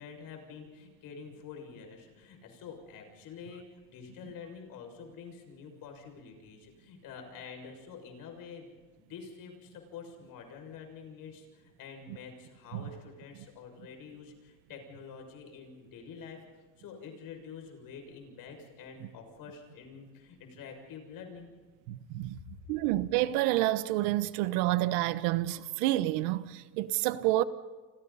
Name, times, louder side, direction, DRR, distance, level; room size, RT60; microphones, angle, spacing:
voice 1, 0.0-16.4 16.8-21.5, left 6 dB, 60° left, 6.7 m, -47 dB
voice 2, 21.9-22.4 22.7-27.4, right 16 dB, 85° right, 1.2 m, -29 dB
29.5 x 26.5 x 4.2 m
cardioid pair, 115°, 38 cm